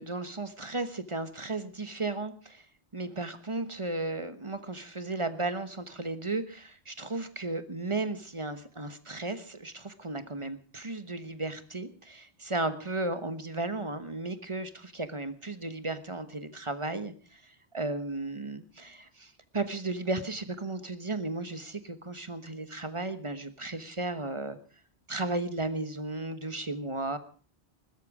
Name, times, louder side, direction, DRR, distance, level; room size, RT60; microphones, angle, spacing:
voice 1, 0.0-2.7 2.9-24.6 25.1-27.2, right 2 dB, 30° right, 10 dB, 1.2 m, -35 dB
21.0 x 13.0 x 4.9 m, 0.41 s
omnidirectional pair, 1.1 m